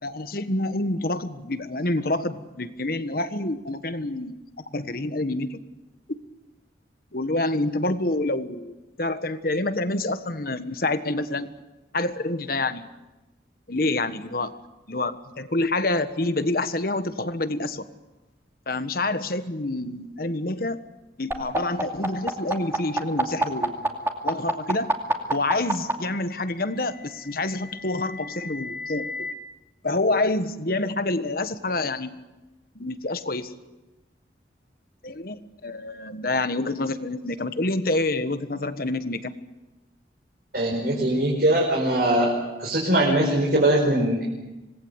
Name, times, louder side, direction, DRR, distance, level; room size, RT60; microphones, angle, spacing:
voice 1, 0.0-4.3 4.7-5.6 6.1-6.2 7.1-11.5 11.9-12.9 13.7-14.5 14.9-17.8 18.7-20.8 21.2-23.9 24.2-24.9 25.3-29.3 29.8-32.1 32.7-33.5 35.0-39.3, left 2 dB, 55° left, 10 dB, 1.4 m, -27 dB
sound 1, 21.3-25.9 27.1-29.3, right 1 dB, 15° right, 2.5 m, -27 dB
voice 2, 40.5-42.3 42.6-44.3, right 1 dB, 60° right, -2 dB, 5.0 m, -21 dB
26.5 x 19.0 x 8.2 m, 1.1 s
head